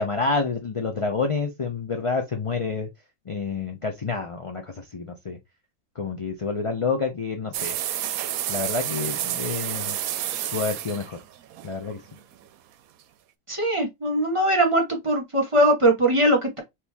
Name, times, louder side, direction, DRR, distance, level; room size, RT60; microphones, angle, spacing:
voice 1, 0.0-2.9 3.3-5.4 5.9-7.8 8.5-10.0 10.5-11.2 11.6-12.0, left 4 dB, 50° left, 0.4 m, -28 dB
sound 1, 7.5-12.5, right 11 dB, 75° right, 1.0 m, -30 dB
voice 2, 13.5-16.6, right 1 dB, 20° right, 1.3 m, -21 dB
4.5 x 2.7 x 3.5 m
omnidirectional pair, 1.5 m